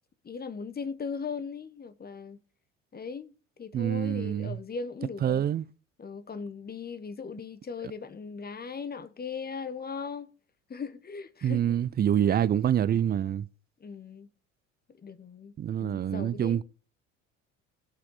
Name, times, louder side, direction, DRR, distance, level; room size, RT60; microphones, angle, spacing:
voice 1, 0.2-2.4 2.9-3.3 3.6-5.4 6.0-10.3 10.7-11.6 13.8-14.3 15.0-15.5 15.8-16.6, left 5 dB, 25° left, 1.1 m, -38 dB
voice 2, 3.7-4.6 5.2-5.7 7.8-7.9 11.4-13.5 15.6-16.6, right 10 dB, 25° right, 0.5 m, -26 dB
17.5 x 6.0 x 4.0 m
figure-of-eight pair, 60°, 39 cm